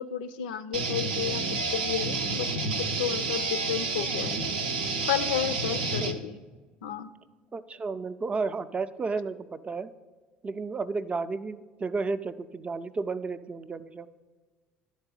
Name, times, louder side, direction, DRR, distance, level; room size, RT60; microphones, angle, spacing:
voice 1, 0.0-2.5 2.8-4.4 5.1-6.4 6.8-7.1, left 10 dB, 75° left, 11 dB, 0.3 m, -32 dB
sound 1, 0.7-6.1, right 3 dB, 85° right, 0.6 m, -29 dB
voice 2, 7.5-9.9 10.4-14.1, right 4 dB, 25° right, 13 dB, 0.4 m, -32 dB
10.5 x 4.1 x 5.4 m, 1.4 s
hypercardioid pair, 60°, 5 cm